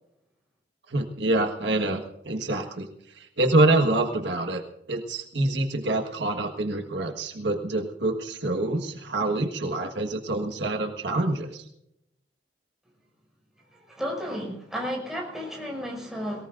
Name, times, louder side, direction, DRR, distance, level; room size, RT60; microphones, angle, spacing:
voice 1, 0.9-2.9 3.2-4.6 4.9-11.6, right 2 dB, 70° right, 3 dB, 1.5 m, -26 dB
voice 2, 13.9-16.5, equal, ahead, -2 dB, 5.9 m, -33 dB
22.0 x 19.0 x 2.6 m, 0.81 s
head